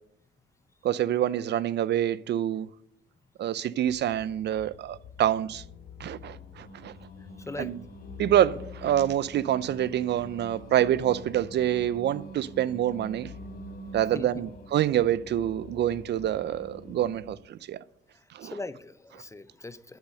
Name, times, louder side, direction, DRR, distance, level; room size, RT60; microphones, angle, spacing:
voice 1, 0.8-2.7 3.4-5.6 6.0-7.0 7.6-7.8 8.2-13.3 13.9-17.8 18.3-18.5, right 11 dB, 60° right, 0.4 m, -26 dB
sound 1, 3.8-17.4, left 9 dB, 80° left, 0.8 m, -49 dB
Singing, 6.2-17.4, right 1 dB, 45° left, 2.0 m, -46 dB
voice 2, 7.2-7.8 14.1-14.4 18.1-20.0, left 2 dB, 15° left, 0.5 m, -40 dB
8.2 x 6.4 x 6.5 m
cardioid pair, 90°, 20 cm